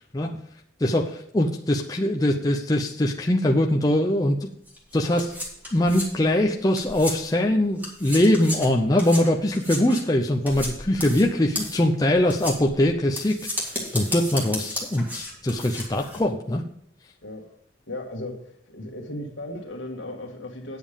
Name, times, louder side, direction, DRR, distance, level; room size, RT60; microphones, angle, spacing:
voice 1, 0.8-4.5 4.9-5.3 5.7-13.4 13.9-16.6, left 1 dB, 20° left, 0.6 m, -22 dB
sound 1, 4.7-7.5 7.8-16.2, left 1 dB, 10° right, 2.0 m, -34 dB
voice 2, 11.0-11.4 17.2-17.5 17.9-18.3 18.7-20.8, left 1 dB, 70° left, 1.8 m, -36 dB
9.3 x 7.3 x 5.1 m
head